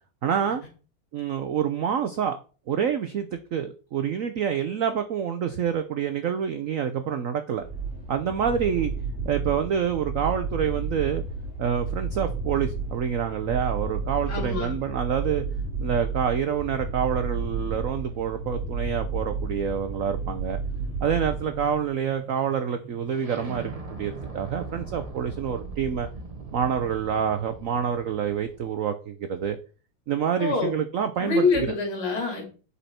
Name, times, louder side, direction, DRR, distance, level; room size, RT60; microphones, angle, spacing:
voice 1, 0.2-0.6 1.1-2.4 2.7-7.6 8.1-8.9 9.2-11.2 11.6-15.4 15.8-20.6 21.0-26.1 26.5-29.6 30.1-31.7, right 8 dB, 85° right, 9 dB, 0.7 m, -27 dB
sound 1, 7.6-21.9, right 4 dB, 5° right, 2.7 m, -32 dB
voice 2, 14.3-14.8 30.4-30.8 31.2-32.4, left 4 dB, 80° left, 1 dB, 3.5 m, -25 dB
sound 2, 19.1-28.7, right 3 dB, 30° right, 0.7 m, -41 dB
8.2 x 5.7 x 4.3 m, 0.36 s
omnidirectional pair, 2.2 m